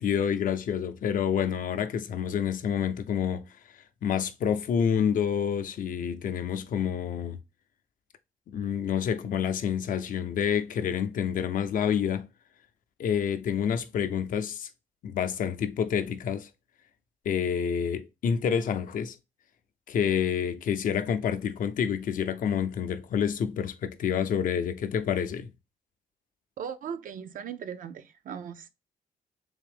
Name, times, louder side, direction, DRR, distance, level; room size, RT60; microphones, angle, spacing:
voice 1, 0.0-3.5 4.0-7.4 8.5-12.3 13.0-14.7 15.0-16.5 17.3-19.2 19.9-25.5, left 8 dB, 60° left, 0.5 m, -28 dB
voice 2, 26.6-28.7, right 8 dB, 60° right, 0.5 m, -38 dB
3.6 x 3.3 x 3.3 m
cardioid pair, 90°, 16 cm